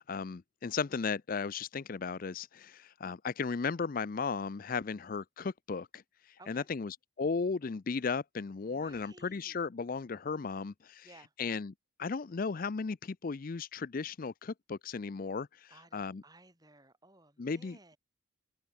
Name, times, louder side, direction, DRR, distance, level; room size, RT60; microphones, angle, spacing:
voice 1, 0.0-11.1 11.4-11.7 12.0-16.2 17.4-17.9, left 5 dB, 40° left, 0.4 m, -36 dB
voice 2, 8.6-9.6 11.0-11.3 15.7-18.0, right 2 dB, 20° right, 7.7 m, -58 dB
open air
head